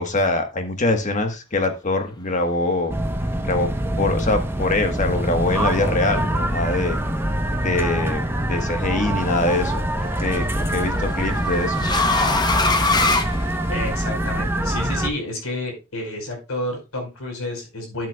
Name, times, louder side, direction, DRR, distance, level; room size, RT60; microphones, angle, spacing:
voice 1, 0.0-2.9 3.4-3.7 4.0-7.0 7.5-11.8, left 2 dB, 35° left, 6 dB, 1.4 m, -23 dB
sound 1, 2.9-15.1, right 1 dB, 10° right, 0.9 m, -24 dB
sound 2, 8.2-8.7 10.1-14.1, left 3 dB, 20° left, 0.9 m, -23 dB
voice 2, 13.7-18.1, left 1 dB, 80° left, 1 dB, 4.8 m, -30 dB
12.0 x 7.9 x 2.3 m, 0.27 s
head